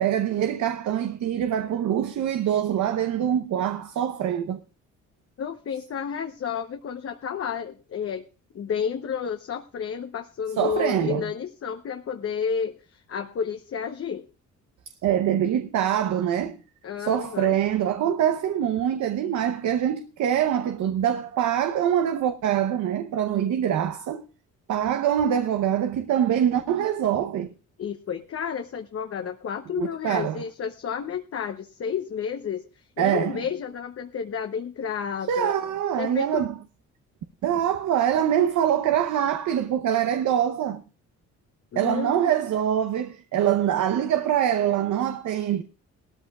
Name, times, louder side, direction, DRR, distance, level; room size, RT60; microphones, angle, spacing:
voice 1, 0.0-4.6 10.6-11.2 15.0-16.6 17.0-24.2 24.7-27.5 29.8-30.4 33.0-33.4 35.3-36.6 37.4-40.8 41.7-45.6, right 10 dB, 75° right, 0.9 m, -24 dB
voice 2, 5.4-8.2 8.5-14.3 16.8-17.6 27.8-35.5 36.0-36.5 41.7-42.3, left 7 dB, 50° left, 0.9 m, -31 dB
18.0 x 13.5 x 2.4 m
cardioid pair, 90°, 30 cm